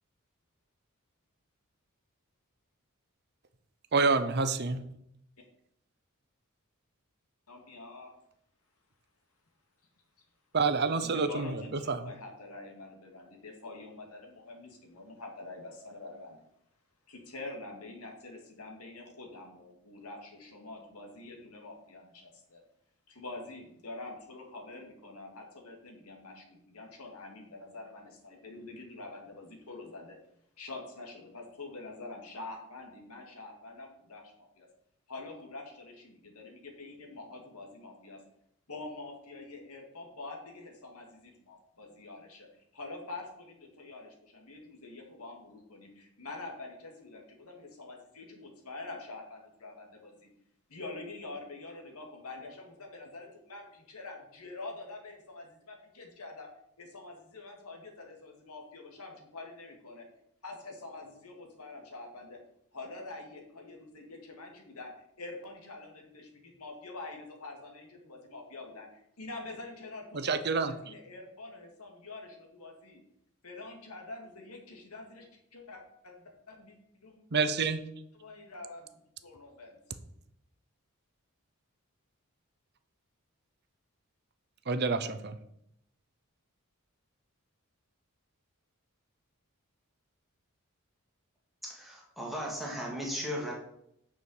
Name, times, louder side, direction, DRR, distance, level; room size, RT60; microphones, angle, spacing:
voice 1, 3.9-4.8 10.5-11.5 11.9-12.1 70.1-70.7 77.3-77.8 84.7-85.4, right 4 dB, 50° right, 0.8 m, -27 dB
voice 2, 7.5-8.1 11.0-16.4 17.1-22.6 23.1-30.2 30.6-34.7 35.1-38.2 38.7-42.5 42.7-50.3 50.7-56.5 56.8-60.1 60.4-62.4 62.7-64.9 65.2-73.0 73.4-76.8 77.0-77.2 78.2-79.8, left 2 dB, 80° left, 2.4 m, -46 dB
voice 3, 91.6-93.5, equal, ahead, 2.3 m, -36 dB
6.9 x 6.3 x 7.2 m
head